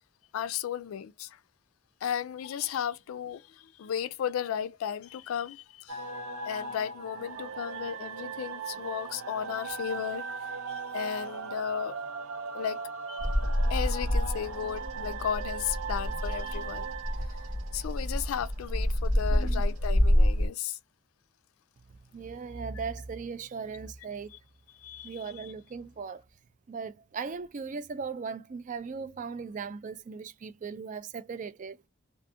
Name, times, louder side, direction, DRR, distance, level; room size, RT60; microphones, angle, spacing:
voice 1, 0.3-1.4 2.0-6.1 6.4-10.3 10.7-12.0 12.5-13.3 13.7-16.9 17.2-17.5 17.7-20.8 24.3-24.4 24.7-25.5, left 8 dB, 80° left, 0.3 m, -35 dB
sound 1, 5.9-18.5, right 5 dB, 85° right, 0.6 m, -39 dB
Bird vocalization bird call bird song, 13.2-20.5, equal, 65° right, 1.2 m, -28 dB
voice 2, 19.3-19.6 22.1-24.3 25.0-26.2 26.7-31.9, right 5 dB, 35° right, 0.3 m, -38 dB
2.5 x 2.4 x 2.6 m
head